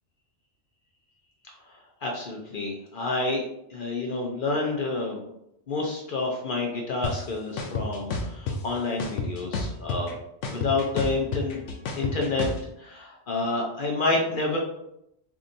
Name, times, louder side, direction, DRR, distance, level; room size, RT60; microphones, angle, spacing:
voice 1, 2.0-3.4 3.7-5.2 5.7-10.1 10.5-11.6 12.0-12.5 12.8-14.6, left 3 dB, 55° left, -1 dB, 0.7 m, -28 dB
sound 1, 7.0-7.1 7.6-8.6 9.0-10.1 10.4-12.6, left 4 dB, 80° left, 0.9 m, -29 dB
4.7 x 2.7 x 2.6 m, 0.80 s
omnidirectional pair, 1.2 m